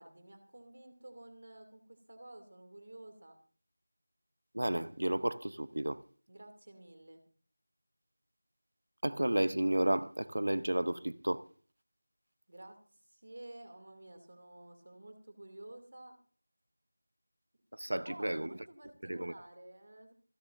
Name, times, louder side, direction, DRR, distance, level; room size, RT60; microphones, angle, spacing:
voice 1, 0.0-3.4 6.3-7.2 12.5-16.2 17.9-20.1, right 1 dB, 45° right, 2.6 m, -52 dB
voice 2, 4.5-6.0 9.0-11.4 17.8-18.5 19.1-19.3, right 1 dB, 75° right, 0.8 m, -32 dB
27.0 x 9.6 x 2.6 m
figure-of-eight pair, 180°, 0 cm